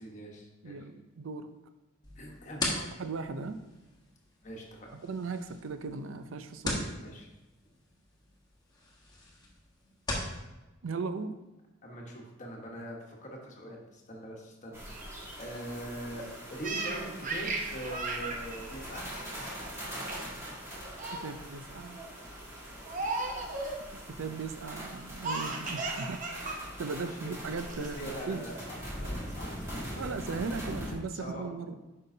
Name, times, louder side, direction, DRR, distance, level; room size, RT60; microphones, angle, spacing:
voice 1, 0.0-0.8 2.2-2.6 4.4-4.9 7.0-7.3 11.8-16.2 16.5-19.1 22.7-22.9 27.1-27.5 27.8-29.8 30.3-30.4 30.6-30.9 31.2-31.4, right 1 dB, 35° left, 0 dB, 1.3 m, -43 dB
voice 2, 0.6-1.5 2.7-3.6 4.9-7.0 10.8-11.4 21.2-22.0 23.9-26.5 26.8-28.5 30.0-31.8, right 4 dB, 80° right, 10 dB, 0.5 m, -38 dB
sound 1, 2.0-10.4, left 2 dB, 20° left, 1.3 m, -40 dB
sound 2, 14.7-30.9, equal, 15° right, 1.7 m, -42 dB
Laughter, 16.6-19.7 20.1-20.4 20.7-21.3 21.8-22.1 22.9-23.8 25.2-26.6 26.9-27.0 27.6-28.1, right 3 dB, 40° right, 0.8 m, -36 dB
9.2 x 5.5 x 2.8 m, 1.1 s
head